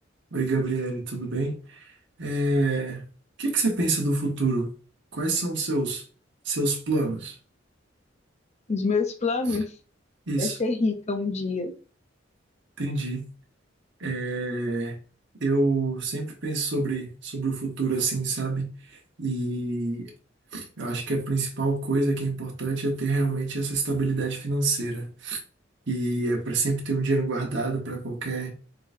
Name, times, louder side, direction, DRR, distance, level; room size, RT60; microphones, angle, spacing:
voice 1, 0.3-1.8 2.2-3.0 3.4-4.7 5.1-6.0 6.4-7.3 9.5-9.6 10.3-10.6 12.8-13.2 14.0-15.0 15.4-20.1 20.5-25.4 25.9-28.5, right 3 dB, 65° right, 1.1 m, -27 dB
voice 2, 8.7-9.6 10.4-11.7, left 3 dB, 35° left, 0.6 m, -26 dB
3.8 x 3.7 x 2.6 m
head